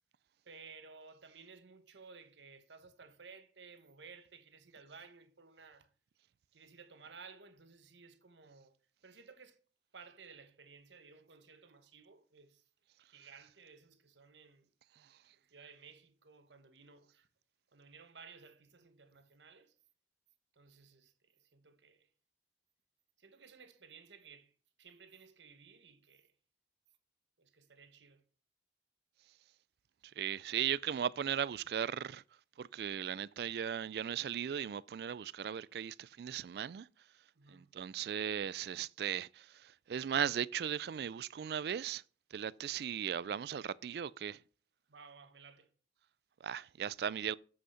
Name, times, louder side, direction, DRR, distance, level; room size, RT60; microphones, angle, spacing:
voice 1, 0.4-5.9 6.5-8.8 9.0-9.6 9.9-12.6 13.0-14.7 15.5-17.3 17.7-19.7 20.5-22.1 23.2-26.3 27.4-28.2 37.3-37.7 44.9-45.7, right 5 dB, 85° right, 1.1 m, -57 dB
voice 2, 30.2-32.2 32.6-36.9 37.5-42.0 42.3-44.4 46.4-47.3, right 8 dB, 60° right, 0.3 m, -37 dB
8.1 x 6.4 x 5.6 m
head